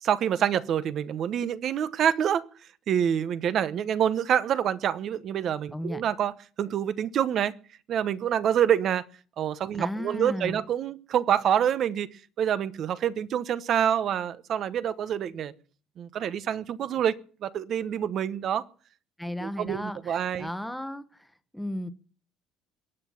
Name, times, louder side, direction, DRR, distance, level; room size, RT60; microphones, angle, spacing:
voice 1, 0.0-2.5 2.9-7.5 7.9-9.1 9.4-12.1 12.4-15.5 16.0-17.1 17.4-18.6 19.4-20.5, right 9 dB, 45° right, 1.0 m, -26 dB
voice 2, 9.7-10.6 19.2-21.3 21.5-21.9, left 1 dB, ahead, 1.1 m, -34 dB
22.0 x 9.2 x 7.3 m
cardioid pair, 145°, 0 cm